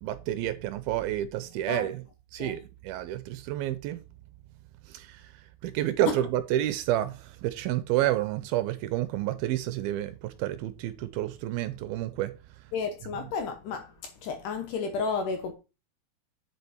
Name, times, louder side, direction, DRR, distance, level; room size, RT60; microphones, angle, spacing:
voice 1, 0.0-2.0 2.3-4.0 4.9-5.3 5.6-12.3, right 13 dB, 80° right, 2.3 m, -29 dB
voice 2, 12.7-15.5, left 5 dB, 70° left, 2.2 m, -32 dB
8.2 x 6.6 x 4.3 m
omnidirectional pair, 4.6 m